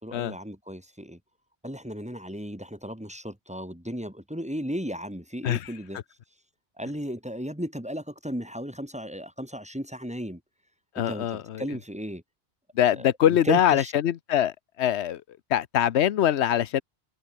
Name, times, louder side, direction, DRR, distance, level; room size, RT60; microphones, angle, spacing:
voice 1, 0.0-1.2 1.6-6.0 6.8-10.4 11.0-12.2 12.9-13.9, equal, 5° right, 2.8 m, -35 dB
voice 2, 11.0-11.7 12.8-15.2 15.5-16.8, left 10 dB, 80° left, 1.0 m, -23 dB
omnidirectional pair, 1.1 m